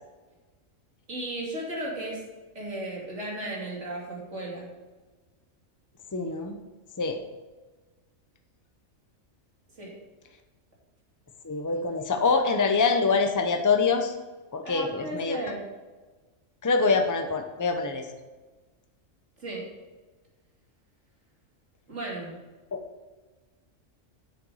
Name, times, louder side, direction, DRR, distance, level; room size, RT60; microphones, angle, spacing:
voice 1, 1.1-2.2 2.5-4.7 9.7-9.9 14.6-15.7 19.4-19.6 21.9-22.4, right 1 dB, 60° right, -3 dB, 3.1 m, -35 dB
voice 2, 6.1-6.6 7.0-7.2 11.4-14.1 14.5-15.4 16.6-18.1 22.7-22.8, left 4 dB, 15° left, 5 dB, 0.7 m, -25 dB
9.1 x 7.6 x 5.6 m, 1.3 s
omnidirectional pair, 1.4 m